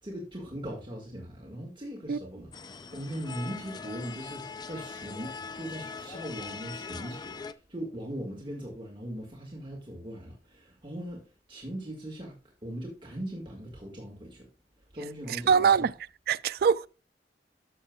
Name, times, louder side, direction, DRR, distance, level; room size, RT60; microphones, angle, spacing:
voice 1, 0.0-12.4 12.6-14.5 14.9-15.9, equal, 25° right, 1.7 m, -40 dB
sound 1, 2.5-7.5, left 5 dB, 25° left, 0.4 m, -41 dB
voice 2, 15.3-15.9 16.3-16.9, right 6 dB, 60° right, 0.3 m, -23 dB
13.0 x 6.5 x 2.3 m
head